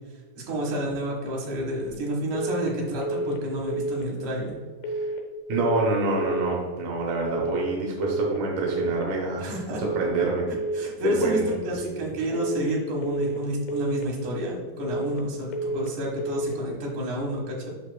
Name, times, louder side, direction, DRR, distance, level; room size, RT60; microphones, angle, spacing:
voice 1, 0.5-4.6 9.4-9.8 10.7-17.7, equal, 60° right, -3 dB, 2.5 m, -30 dB
sound 1, 2.3-2.7 3.0-3.4 3.7-4.1 4.8-5.2 5.5-5.9 6.2-6.6 7.3-7.7 8.0-8.4 8.7-9.1 9.8-10.2 10.5-10.9 11.2-11.6 12.3-12.7 13.0-13.4 13.7-14.1 14.9-15.3 15.5-15.9 16.2-16.6, right 2 dB, 80° left, 2.9 m, -30 dB
voice 2, 5.5-9.5 9.8-10.5 11.0-11.5 11.8-12.4, right 3 dB, 80° right, -1 dB, 1.8 m, -27 dB
8.1 x 5.8 x 2.2 m, 1.5 s
omnidirectional pair, 4.7 m